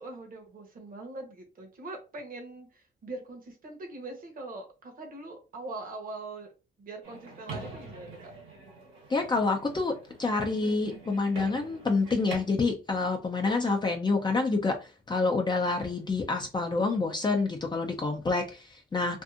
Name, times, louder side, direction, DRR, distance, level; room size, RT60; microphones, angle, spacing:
voice 1, 0.0-6.5 6.8-8.3, right 2 dB, 45° right, 1.0 m, -42 dB
sound 1, 7.0-12.4, right 3 dB, 90° right, 1.2 m, -44 dB
voice 2, 9.1-19.2, left 3 dB, 20° left, 0.5 m, -28 dB
2.6 x 2.4 x 2.4 m
cardioid pair, 90°, 20 cm